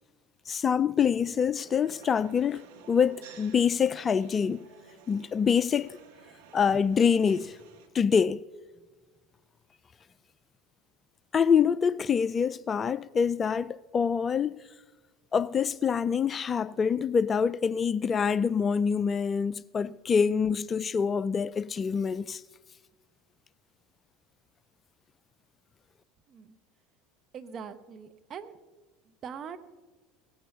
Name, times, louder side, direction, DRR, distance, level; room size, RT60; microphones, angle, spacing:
voice 1, 0.5-4.6 5.1-6.0 6.5-7.6 7.9-8.4 11.3-14.6 15.3-22.4, left 6 dB, 30° left, 0.4 m, -26 dB
sound 1, 1.6-7.9, right 6 dB, 70° right, 1.7 m, -53 dB
voice 2, 27.3-28.6 29.0-29.6, right 7 dB, 40° right, 1.0 m, -42 dB
17.5 x 15.0 x 2.8 m
hypercardioid pair, 70°, 0 cm